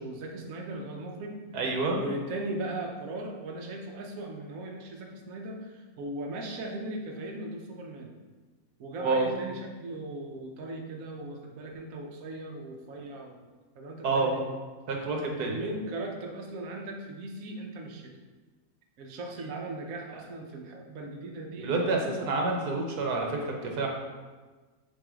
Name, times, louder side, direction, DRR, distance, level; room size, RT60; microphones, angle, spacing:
voice 1, 0.0-1.4 1.9-8.1 8.8-13.5 13.7-14.5 15.2-18.2 19.0-22.3, right 1 dB, 65° right, 1 dB, 1.1 m, -38 dB
voice 2, 1.5-2.0 9.0-9.3 14.0-14.3 14.9-15.6 21.6-23.9, right 3 dB, 90° right, 1 dB, 1.5 m, -28 dB
7.5 x 3.0 x 4.9 m, 1.3 s
omnidirectional pair, 1.6 m